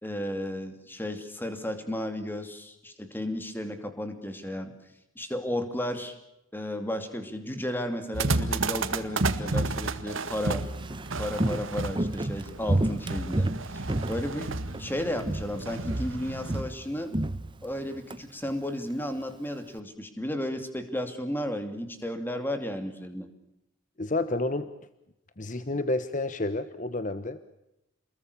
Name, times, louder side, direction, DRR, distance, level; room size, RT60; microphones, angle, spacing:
voice 1, 0.0-4.7 5.2-6.2 6.5-10.7 11.2-17.1 17.6-23.3, left 1 dB, 10° left, 8 dB, 2.7 m, -33 dB
sound 1, 8.1-16.6, right 3 dB, 65° right, 1.8 m, -32 dB
Walk footsteps, 10.6-14.9 15.2-15.6 15.9-18.2 18.5-18.6, right 1 dB, 25° right, 0.9 m, -30 dB
voice 2, 24.0-24.7 25.4-27.4, left 2 dB, 35° left, 12 dB, 1.1 m, -30 dB
28.5 x 21.5 x 6.9 m, 0.83 s
head